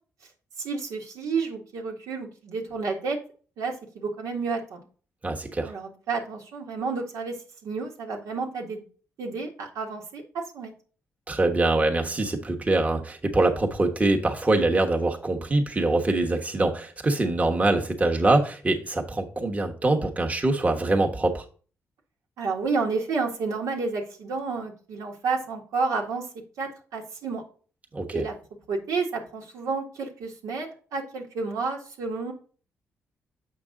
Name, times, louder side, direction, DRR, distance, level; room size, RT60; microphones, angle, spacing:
voice 1, 0.6-3.2 3.6-4.8 5.6-7.4 7.6-8.8 9.2-10.2 10.5-10.7 22.4-26.3 26.6-27.4 28.1-28.3 28.7-32.3, right 4 dB, 85° right, -1 dB, 1.8 m, -30 dB
voice 2, 5.2-5.7 11.3-21.4 27.9-28.2, right 2 dB, 25° right, 2 dB, 1.2 m, -24 dB
7.1 x 5.3 x 3.8 m, 0.39 s
cardioid pair, 80°, 6 cm